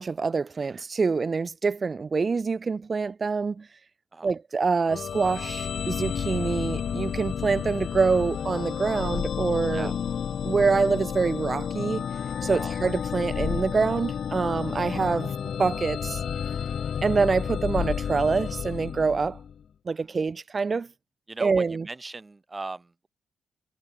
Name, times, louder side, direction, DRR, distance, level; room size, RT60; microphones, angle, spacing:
voice 1, 0.0-3.7 4.2-9.9 10.4-12.1 12.4-15.3 15.6-16.2 17.0-19.4 19.8-20.9 21.4-21.9, right 4 dB, 45° right, 0.9 m, -25 dB
sound 1, 4.9-19.6, left 8 dB, 65° left, 1.5 m, -31 dB
voice 2, 21.3-23.1, right 3 dB, 30° right, 6.2 m, -39 dB
supercardioid pair, 55°, 0 cm